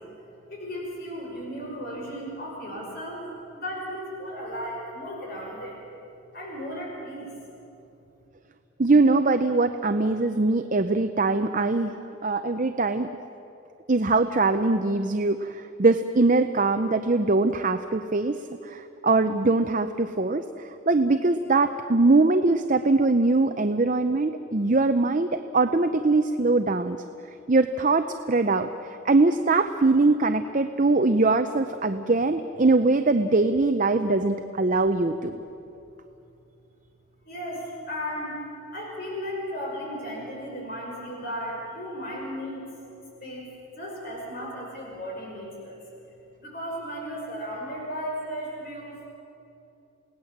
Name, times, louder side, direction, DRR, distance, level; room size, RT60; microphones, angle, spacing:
voice 1, 0.5-3.2 3.5-5.8 6.3-7.3 37.3-38.4 38.7-42.7 43.2-43.5 43.8-45.8 46.4-49.1, equal, 45° left, -2 dB, 5.6 m, -35 dB
voice 2, 8.8-11.9 12.2-13.1 13.9-18.4 18.6-27.0 27.5-35.4, right 3 dB, 40° right, 8 dB, 0.6 m, -22 dB
28.5 x 18.0 x 7.3 m, 2.9 s
head